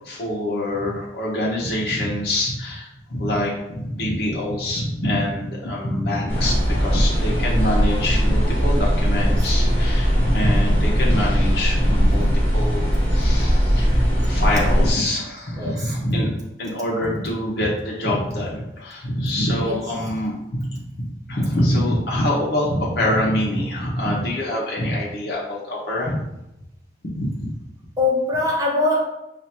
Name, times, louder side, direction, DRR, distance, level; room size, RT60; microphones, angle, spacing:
voice 1, 0.0-16.3 16.6-26.3 27.1-27.5, left 1 dB, 65° left, -4 dB, 0.9 m, -25 dB
sound 1, 6.3-14.9, equal, 10° left, 1.1 m, -19 dB
voice 2, 9.2-9.5 15.6-15.8 16.7-16.8 19.6-19.8 28.0-29.0, left 2 dB, 20° right, -4 dB, 0.9 m, -22 dB
4.9 x 2.5 x 2.9 m, 0.89 s
head